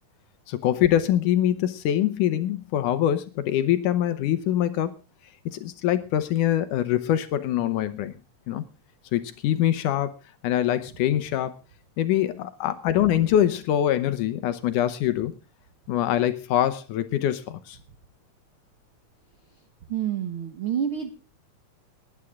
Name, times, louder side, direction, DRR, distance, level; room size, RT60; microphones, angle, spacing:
voice 1, 0.5-4.9 5.5-8.1 8.5-8.6 9.1-10.1 10.4-11.6 12.0-15.3 15.9-17.8, left 11 dB, 75° left, 12 dB, 2.2 m, -24 dB
voice 2, 19.9-21.1, right 9 dB, 65° right, 7 dB, 1.3 m, -28 dB
19.5 x 9.9 x 3.6 m, 0.31 s
omnidirectional pair, 4.1 m